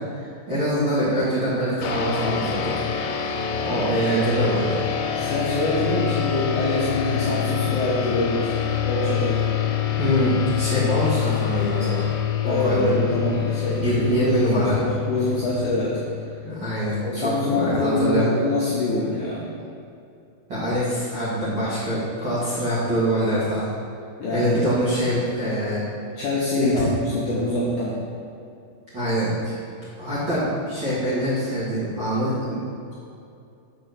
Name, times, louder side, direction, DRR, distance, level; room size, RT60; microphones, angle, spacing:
voice 1, 0.1-4.8 10.0-12.0 12.4-12.9 13.8-14.8 16.4-18.2 20.5-23.7 24.3-25.8 26.5-26.9 28.9-29.5 30.0-32.6, equal, 40° right, -12 dB, 1.8 m, -24 dB
sound 1, 1.8-16.6, left 9 dB, 90° left, 2.8 m, -26 dB
voice 2, 5.1-8.5 8.9-9.5 12.4-13.8 14.1-16.0 17.0-19.5 24.2-24.6 26.2-27.9, left 2 dB, 70° left, -6 dB, 1.9 m, -24 dB
6.8 x 4.4 x 6.6 m, 2.6 s
omnidirectional pair, 4.7 m